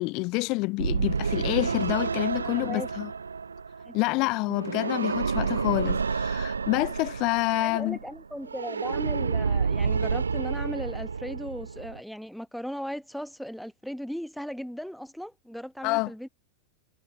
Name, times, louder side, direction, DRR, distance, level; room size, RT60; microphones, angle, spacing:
voice 1, 0.0-3.1 3.9-8.0 15.8-16.1, left 25 dB, 40° left, 0.3 m, -28 dB
sound 1, 0.8-12.0, right 5 dB, 75° right, 0.6 m, -29 dB
voice 2, 2.4-2.9 3.9-4.0 7.6-16.3, equal, ahead, 1.1 m, -37 dB
figure-of-eight pair, 90°, 0 cm